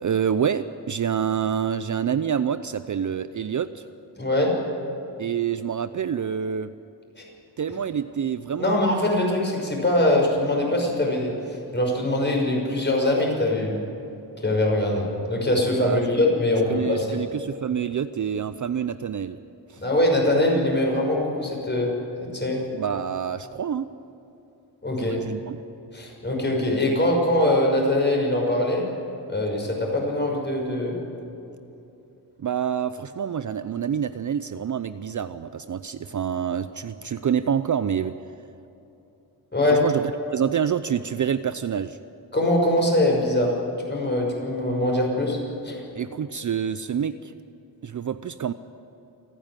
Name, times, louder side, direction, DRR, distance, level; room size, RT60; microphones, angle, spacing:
voice 1, 0.0-3.8 5.2-6.7 7.6-8.8 15.8-16.1 16.7-19.4 19.7-19.8 22.7-23.9 25.0-25.6 32.4-38.1 39.7-42.0 45.9-47.3 47.8-48.5, right 8 dB, 45° right, 12 dB, 0.6 m, -27 dB
voice 2, 4.2-4.5 7.2-7.3 8.6-11.3 11.7-13.7 14.4-17.2 19.8-21.9 22.2-22.6 24.8-25.2 25.9-28.8 29.3-31.0 39.5-39.8 42.3-43.5 43.9-45.4 45.6-45.8, left 1 dB, 25° left, -1 dB, 5.8 m, -22 dB
28.5 x 10.0 x 9.1 m, 2.9 s
wide cardioid pair, 105°, 44 cm